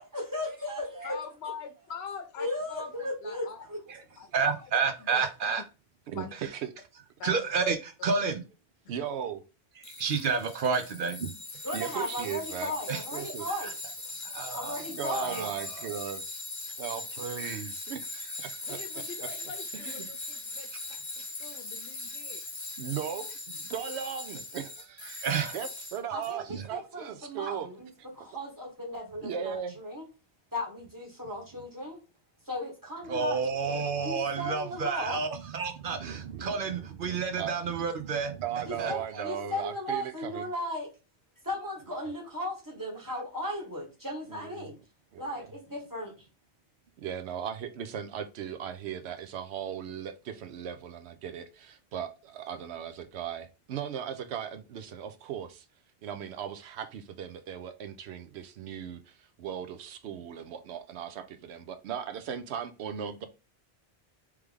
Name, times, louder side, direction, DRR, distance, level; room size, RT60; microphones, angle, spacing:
voice 1, 0.0-1.1 2.4-3.8 11.6-13.7 14.5-15.4 26.1-27.9 28.1-30.1 30.5-32.0 32.4-33.4 34.0-35.2 38.6-40.9 41.4-44.8 45.2-46.2, left 1 dB, 20° right, 1.7 m, -36 dB
voice 2, 1.0-3.7 4.2-4.3 5.0-5.2 6.1-6.3 7.2-7.3 8.0-8.2 18.6-22.4, left 6 dB, 85° left, 0.9 m, -43 dB
voice 3, 4.3-5.6 7.2-8.4 9.9-11.3 12.9-13.0 13.6-13.7 14.2-15.9 17.5-17.6 25.2-25.6 26.5-26.7 33.1-39.2, right 5 dB, 60° right, 0.7 m, -30 dB
voice 4, 8.9-9.4 11.7-12.7 13.1-13.5 14.9-16.2 16.8-18.8 19.7-20.1 22.8-25.2 25.5-27.7 28.2-28.3 29.2-29.8 36.0-36.2 36.5-36.6 37.4-37.5 38.4-40.5 44.3-44.7 45.1-45.5 47.0-55.7 56.0-63.3, right 8 dB, 85° right, 0.9 m, -37 dB
Tools, 9.8-26.3, left 2 dB, 15° left, 0.9 m, -40 dB
3.3 x 3.2 x 3.4 m
omnidirectional pair, 1.1 m